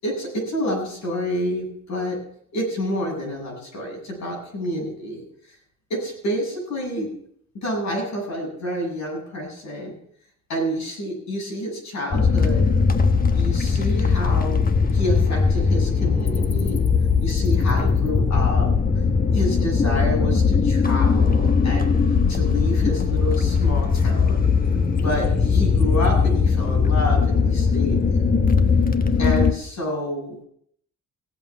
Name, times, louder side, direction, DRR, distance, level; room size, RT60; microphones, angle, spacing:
voice 1, 0.0-2.2 2.5-5.2 5.9-7.1 7.5-9.9 10.5-12.6 13.3-14.6 14.9-16.8 17.2-18.7 19.3-22.0 22.3-24.4 25.0-28.0 29.2-30.4, equal, 65° left, -1 dB, 8.0 m, -28 dB
sound 1, 12.1-29.5, left 5 dB, 30° left, 1.2 m, -19 dB
16.5 x 7.8 x 7.2 m, 0.66 s
cardioid pair, 90°, 30 cm